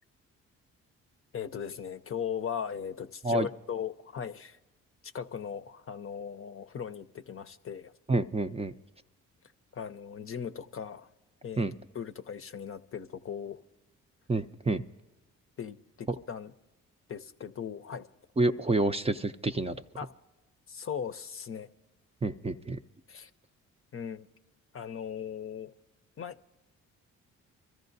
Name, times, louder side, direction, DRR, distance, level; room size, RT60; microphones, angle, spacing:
voice 1, 1.3-4.6 5.1-7.9 9.7-11.1 11.4-11.7 11.9-13.6 15.6-16.5 17.1-18.1 20.0-20.1 20.7-21.7 23.1-23.3 23.9-24.3 24.7-25.7 26.2-26.4, left 7 dB, 40° left, 10 dB, 0.7 m, -38 dB
voice 2, 8.1-8.7 11.6-11.7 14.3-14.8 16.1-16.2 18.4-19.8 22.2-22.8, right 2 dB, 20° right, 7 dB, 0.5 m, -28 dB
24.5 x 14.0 x 2.7 m, 1.0 s
supercardioid pair, 60°, 33 cm